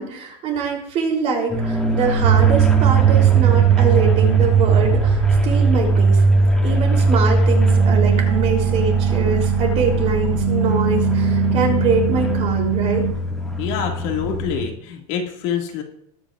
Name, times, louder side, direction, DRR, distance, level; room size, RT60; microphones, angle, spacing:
voice 1, 0.0-6.2 6.6-13.1, right 4 dB, 35° right, 0 dB, 3.2 m, -24 dB
sound 1, 1.5-14.6, right 2 dB, 5° left, 1.7 m, -20 dB
sound 2, 2.2-13.1, right 11 dB, 65° right, 0.9 m, -20 dB
voice 2, 13.6-15.8, left 7 dB, 55° left, 1 dB, 2.0 m, -26 dB
21.0 x 8.8 x 2.4 m, 0.70 s
supercardioid pair, 160°, 19 cm